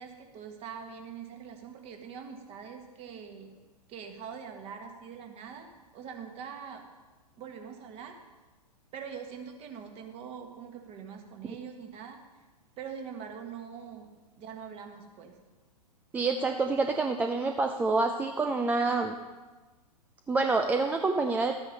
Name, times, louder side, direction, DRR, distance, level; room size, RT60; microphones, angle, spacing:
voice 1, 0.0-3.5 3.9-5.7 5.9-6.8 7.4-8.2 8.9-12.2 12.8-14.1 14.4-15.3, right 7 dB, 30° right, 3 dB, 1.6 m, -43 dB
voice 2, 16.1-19.1 20.3-21.6, right 3 dB, 10° right, 5 dB, 0.4 m, -27 dB
12.5 x 8.9 x 5.4 m, 1.2 s
figure-of-eight pair, 105°, 21 cm